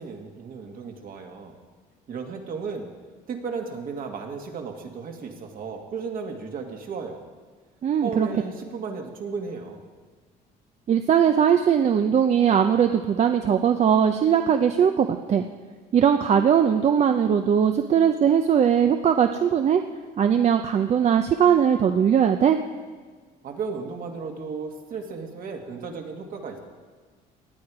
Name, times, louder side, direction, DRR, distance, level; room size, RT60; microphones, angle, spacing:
voice 1, 0.0-1.6 2.1-2.9 3.3-7.2 8.0-9.8 23.4-26.6, right 5 dB, 55° right, 3 dB, 2.0 m, -34 dB
voice 2, 7.8-8.3 10.9-15.4 15.9-19.8 20.2-22.6, right 8 dB, 40° right, 7 dB, 0.6 m, -20 dB
18.5 x 9.7 x 4.9 m, 1.5 s
cardioid pair, 110°, 17 cm